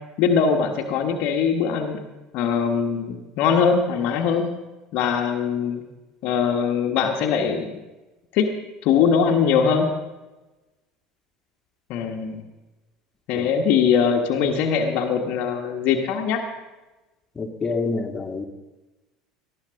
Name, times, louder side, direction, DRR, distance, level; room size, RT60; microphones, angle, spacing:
voice 1, 0.2-2.0 2.3-4.5 4.9-5.8 6.2-7.8 8.3-8.5 8.8-10.0 11.9-12.4 13.3-16.4, left 6 dB, 55° left, 4 dB, 1.4 m, -21 dB
voice 2, 17.4-18.4, left 3 dB, 20° left, 3 dB, 1.9 m, -27 dB
19.0 x 13.5 x 3.7 m, 1.1 s
figure-of-eight pair, 70°, 3 cm